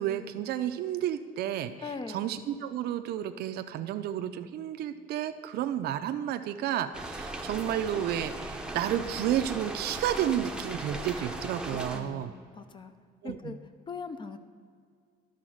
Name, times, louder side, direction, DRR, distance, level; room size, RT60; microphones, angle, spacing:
voice 1, 0.0-12.3 13.2-13.6, right 11 dB, 70° right, 10 dB, 0.5 m, -31 dB
voice 2, 1.8-2.2 11.1-11.4 11.7-12.9 13.2-13.6 13.9-14.4, left 4 dB, 30° left, 10 dB, 0.6 m, -41 dB
sound 1, 6.9-12.0, right 1 dB, 5° right, 0.7 m, -38 dB
11.5 x 4.1 x 6.3 m, 2.1 s
cardioid pair, 110°, 17 cm